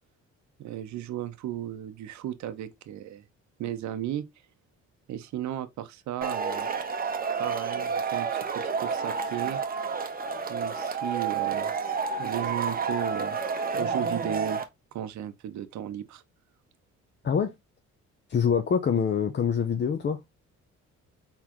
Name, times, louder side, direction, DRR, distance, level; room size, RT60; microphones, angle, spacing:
voice 1, 0.6-3.3 3.6-4.3 5.1-6.7 7.4-9.6 10.5-11.7 12.2-13.4 13.7-16.2, right 11 dB, 70° right, 0.7 m, -35 dB
Male speech man speaking / Shout / Clapping, 6.2-14.6, right 5 dB, 30° right, 0.7 m, -30 dB
voice 2, 18.3-20.2, left 7 dB, 35° left, 0.6 m, -25 dB
4.1 x 3.6 x 2.9 m
cardioid pair, 90°, 30 cm